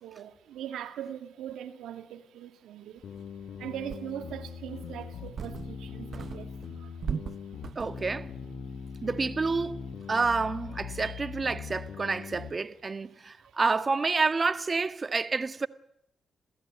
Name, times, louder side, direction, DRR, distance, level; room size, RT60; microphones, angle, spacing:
voice 1, 0.0-3.0 3.6-7.0 11.0-11.1, right 10 dB, 90° right, 2.4 m, -41 dB
sound 1, 3.0-12.5, left 6 dB, 70° left, 3.4 m, -41 dB
sound 2, 3.3-3.4 3.9-4.5 5.0-5.8 6.1-8.1, right 7 dB, 60° right, 0.9 m, -38 dB
voice 2, 7.7-8.3 9.0-15.7, right 4 dB, 40° right, 1.7 m, -29 dB
28.0 x 16.5 x 9.3 m
supercardioid pair, 55°, 0 cm